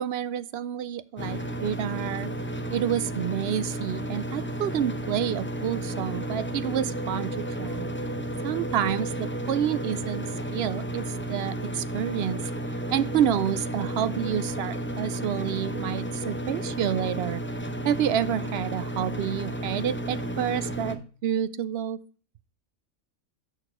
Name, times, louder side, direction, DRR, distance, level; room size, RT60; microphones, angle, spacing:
voice 1, 0.0-2.3 2.7-7.3 7.6-7.9 8.4-12.4 12.9-17.4 17.8-22.0, right 9 dB, 65° right, 16 dB, 0.7 m, -29 dB
sound 1, 1.2-21.0, right 1 dB, 15° left, 0.5 m, -32 dB
6.5 x 6.4 x 4.9 m, 0.40 s
omnidirectional pair, 1.4 m